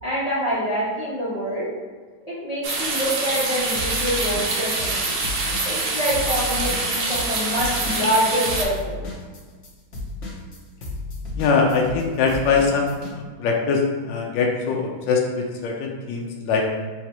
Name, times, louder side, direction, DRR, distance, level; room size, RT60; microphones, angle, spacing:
voice 1, 0.0-1.7 2.3-5.1 5.6-9.0, equal, 35° right, -10 dB, 0.6 m, -26 dB
sound 1, 2.6-8.6, right 3 dB, 65° right, 1.3 m, -25 dB
sound 2, 3.8-5.0 5.2-13.1, left 2 dB, 50° left, 0.9 m, -33 dB
voice 2, 11.3-16.6, left 5 dB, 75° left, 0 dB, 1.1 m, -22 dB
3.9 x 2.8 x 4.6 m, 1.5 s
omnidirectional pair, 2.4 m